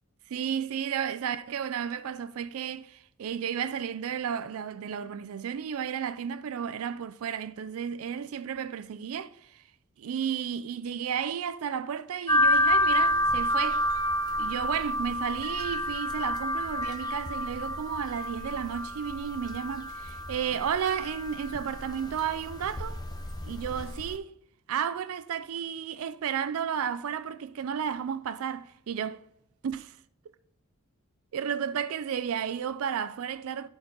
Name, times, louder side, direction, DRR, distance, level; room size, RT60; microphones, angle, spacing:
voice 1, 0.3-9.6 10.0-13.8 14.4-23.0 23.4-24.4 24.7-29.2 29.6-30.0 31.3-33.7, right 8 dB, 75° right, 0.4 m, -33 dB
sound 1, 12.3-24.2, equal, 20° left, 0.6 m, -29 dB
11.0 x 4.0 x 3.9 m
head